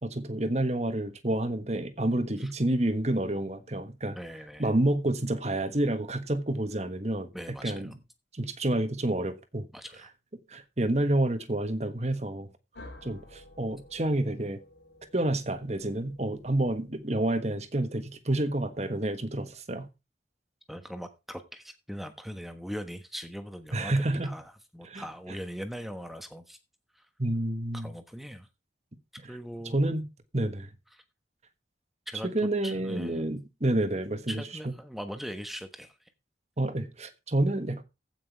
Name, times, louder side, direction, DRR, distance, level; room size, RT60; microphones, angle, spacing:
voice 1, 0.0-4.2 4.6-7.3 7.6-7.9 8.3-9.7 10.5-12.5 13.0-14.6 15.1-19.9 23.7-24.3 24.8-25.0 27.2-27.9 29.6-30.0 30.3-30.7 32.3-34.4 36.6-37.8, right 1 dB, 35° right, 1.3 m, -29 dB
voice 2, 4.1-4.7 7.3-8.0 9.7-10.1 20.7-26.6 26.9-27.1 27.7-28.5 29.3-29.8 30.9-31.0 32.1-33.4 34.3-36.0, equal, ahead, 1.2 m, -40 dB
sound 1, 12.7-17.4, left 1 dB, 75° left, 3.5 m, -52 dB
15.5 x 6.2 x 4.6 m
head